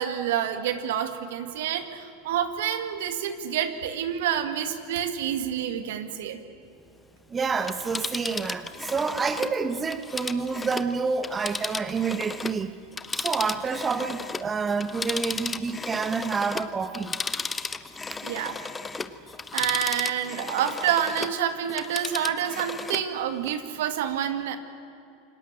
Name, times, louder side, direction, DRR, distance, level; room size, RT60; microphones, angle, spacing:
voice 1, 0.0-6.4 18.2-18.6 19.5-24.6, right 9 dB, 70° right, 9 dB, 2.1 m, -28 dB
voice 2, 7.3-12.7 13.1-17.2 18.1-18.2, right 5 dB, 25° right, 10 dB, 1.4 m, -28 dB
Telephone, 7.5-12.6 12.9-21.4 21.7-23.1 23.5-23.6, left 4 dB, 15° left, 1.2 m, -34 dB
28.0 x 19.5 x 7.6 m, 2.7 s
hypercardioid pair, 85°, 0 cm